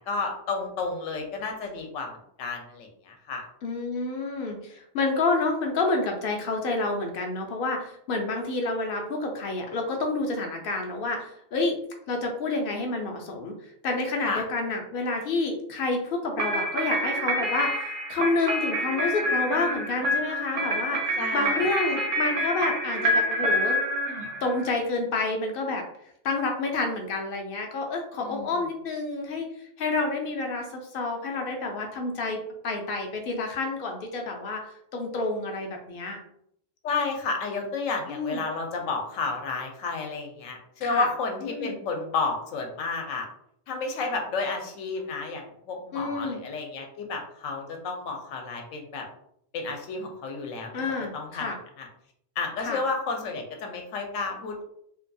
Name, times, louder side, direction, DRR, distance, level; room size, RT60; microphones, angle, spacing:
voice 1, 0.0-2.1 2.4-3.4 14.2-14.4 21.2-21.7 28.2-28.5 36.8-43.3 43.7-49.0 49.5-50.7 51.1-51.9 52.4-54.6, left 4 dB, 80° left, 3 dB, 1.0 m, -31 dB
voice 2, 3.6-11.8 12.1-13.5 13.8-23.8 24.4-25.8 26.2-32.4 32.6-34.7 34.9-36.2 38.1-38.4 40.8-41.1 41.4-41.8 45.9-46.4 50.7-51.6 52.6-52.8, left 3 dB, 65° left, 2 dB, 0.6 m, -29 dB
sound 1, 16.4-24.7, equal, 70° right, 0.9 m, -27 dB
2.8 x 2.2 x 2.5 m, 0.70 s
omnidirectional pair, 1.4 m